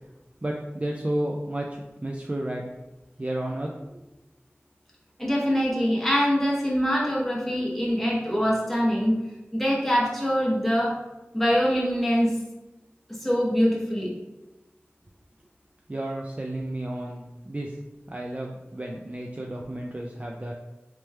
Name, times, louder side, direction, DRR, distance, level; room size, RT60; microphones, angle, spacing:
voice 1, 0.4-1.7 2.0-2.6 3.2-4.0 15.9-17.7 18.1-20.5, right 1 dB, 30° right, 0 dB, 0.4 m, -32 dB
voice 2, 5.2-9.1 9.5-11.0 11.3-12.4 13.1-14.1, equal, 5° left, -4 dB, 0.8 m, -24 dB
3.2 x 3.1 x 3.2 m, 1.0 s
wide cardioid pair, 45°, 4 cm